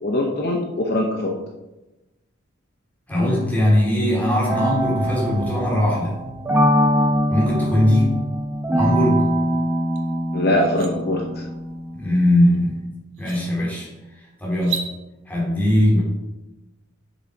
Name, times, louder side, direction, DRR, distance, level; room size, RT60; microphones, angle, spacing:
voice 1, 0.0-1.3 10.3-11.4, left 1 dB, 50° left, 0 dB, 0.8 m, -22 dB
voice 2, 3.1-6.1 7.3-8.2 8.7-9.2 11.9-12.8 13.2-13.9 14.4-14.9 15.3-16.0, left 1 dB, 10° left, -5 dB, 2.4 m, -20 dB
sound 1, 4.5-12.7, equal, 10° right, 0.9 m, -23 dB
sound 2, 10.0-10.1 10.5-10.9 12.5-12.6 13.1-13.4 14.5-14.9, right 6 dB, 70° right, 1.1 m, -31 dB
6.6 x 6.2 x 4.6 m, 1.0 s
head